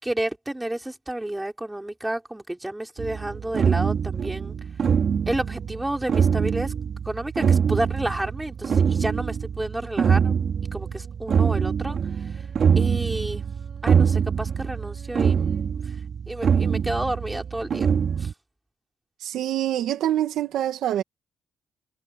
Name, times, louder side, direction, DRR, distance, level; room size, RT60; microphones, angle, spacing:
voice 1, 0.0-4.6 5.3-6.7 7.0-10.3 10.7-12.4 12.8-13.5 13.8-15.5 15.8-16.0 16.3-17.9 18.2-18.3, right 1 dB, 10° right, 5.4 m, -30 dB
sound 1, 3.0-18.3, right 7 dB, 50° right, 5.5 m, -24 dB
voice 2, 19.2-21.0, right 12 dB, 80° right, 1.8 m, -25 dB
cardioid pair, 90°, 0 cm